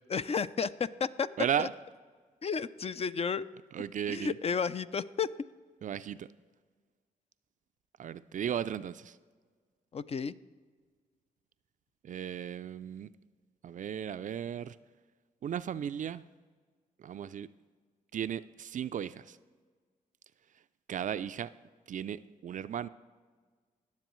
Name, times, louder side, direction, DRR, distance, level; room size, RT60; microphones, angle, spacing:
voice 1, 0.1-1.3 1.6-1.7 2.4-3.5 4.1-5.3 9.9-10.3, left 6 dB, 40° left, 14 dB, 0.4 m, -32 dB
voice 2, 1.4-1.7 3.7-4.4 5.8-6.3 8.0-9.2 12.0-13.1 13.6-14.8 15.4-16.2 17.0-17.5 18.1-19.4 20.9-21.5 21.9-22.9, right 9 dB, 50° right, 14 dB, 0.4 m, -35 dB
18.0 x 7.1 x 3.1 m, 1.5 s
supercardioid pair, 55°, 16 cm